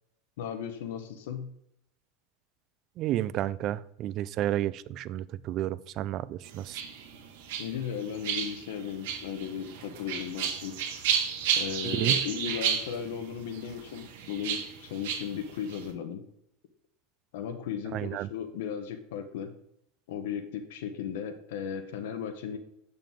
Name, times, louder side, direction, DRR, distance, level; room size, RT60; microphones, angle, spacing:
voice 1, 0.4-1.5 7.6-11.1 11.5-16.2 17.3-19.6 20.1-22.6, left 8 dB, 75° left, 9 dB, 1.0 m, -36 dB
voice 2, 3.0-6.8 11.8-12.2 17.9-18.3, right 13 dB, 35° right, 17 dB, 0.3 m, -31 dB
sound 1, 6.4-15.9, right 8 dB, 75° right, 1.3 m, -32 dB
7.6 x 6.8 x 3.6 m, 0.76 s
supercardioid pair, 170°, 0 cm